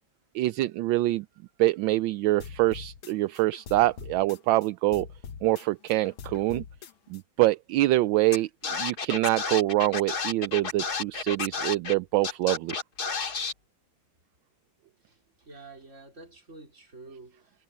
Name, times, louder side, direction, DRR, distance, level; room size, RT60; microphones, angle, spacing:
voice 1, 0.3-1.3 1.6-5.1 5.4-6.6 7.1-12.8, right 17 dB, 75° right, 1.2 m, -25 dB
sound 1, 2.4-4.7 4.9-7.2, left 7 dB, 75° left, 1.9 m, -43 dB
Scratching (performance technique), 8.3-8.4 8.6-11.9 12.2-13.5, left 5 dB, 50° left, 2.5 m, -31 dB
voice 2, 15.0-17.6, right 3 dB, 35° right, 4.8 m, -49 dB
omnidirectional pair, 2.3 m